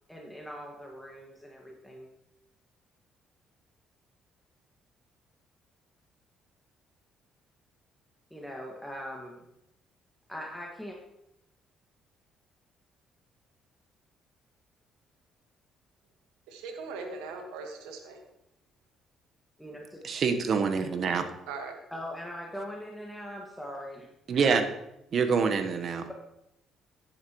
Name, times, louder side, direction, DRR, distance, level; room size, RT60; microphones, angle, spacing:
voice 1, 0.1-2.1 8.3-9.4 10.3-11.0 19.6-20.0 21.9-24.1, equal, 5° left, -1 dB, 1.9 m, -41 dB
voice 2, 16.5-18.2 21.5-21.8, right 4 dB, 85° right, 4 dB, 1.6 m, -40 dB
voice 3, 20.0-21.2 24.3-24.7 25.1-26.1, right 5 dB, 55° right, 8 dB, 1.2 m, -26 dB
10.5 x 10.0 x 3.1 m, 0.85 s
supercardioid pair, 60°, 0 cm